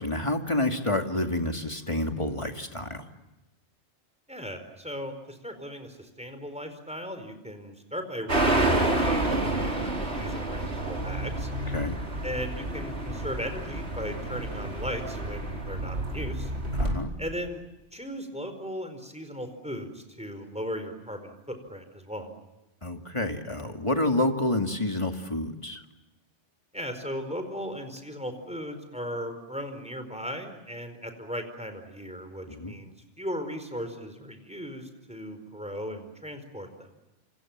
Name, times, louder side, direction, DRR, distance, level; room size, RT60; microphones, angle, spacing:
voice 1, 0.0-3.0 11.7-11.9 16.8-17.2 22.8-25.8 32.6-32.7, left 1 dB, 25° left, 5 dB, 2.4 m, -28 dB
voice 2, 4.3-9.7 10.1-11.5 12.2-16.5 17.2-17.6 17.9-22.3 26.7-36.9, equal, 5° right, 8 dB, 4.7 m, -37 dB
sound 1, 8.3-17.0, right 1 dB, 65° right, 4.9 m, -29 dB
28.5 x 26.5 x 7.4 m, 1.0 s
omnidirectional pair, 1.2 m